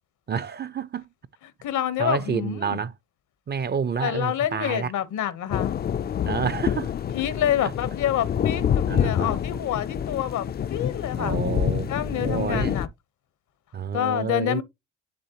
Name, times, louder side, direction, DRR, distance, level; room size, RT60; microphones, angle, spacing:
voice 1, 0.3-1.1 2.0-2.9 3.5-4.9 6.2-6.9 8.9-9.4 11.2-12.8 13.7-14.6, right 6 dB, 35° right, 0.5 m, -29 dB
voice 2, 1.6-2.8 4.0-5.8 7.1-11.4 11.9-12.9 13.9-14.6, left 11 dB, 75° left, 1.0 m, -27 dB
sound 1, 5.5-12.9, left 9 dB, 35° left, 0.4 m, -27 dB
10.0 x 3.4 x 2.9 m
cardioid pair, 90°, 30 cm